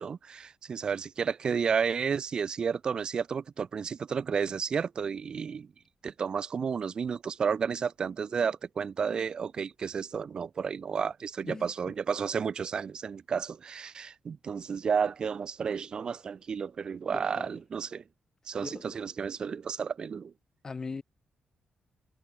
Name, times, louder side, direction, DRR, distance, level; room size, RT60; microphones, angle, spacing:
voice 1, 0.0-5.7 6.0-18.0 18.5-20.3, right 6 dB, 45° right, 0.9 m, -32 dB
voice 2, 17.1-17.6 18.6-19.0 20.6-21.0, left 4 dB, 30° left, 1.5 m, -40 dB
cardioid pair, 130°, 2 cm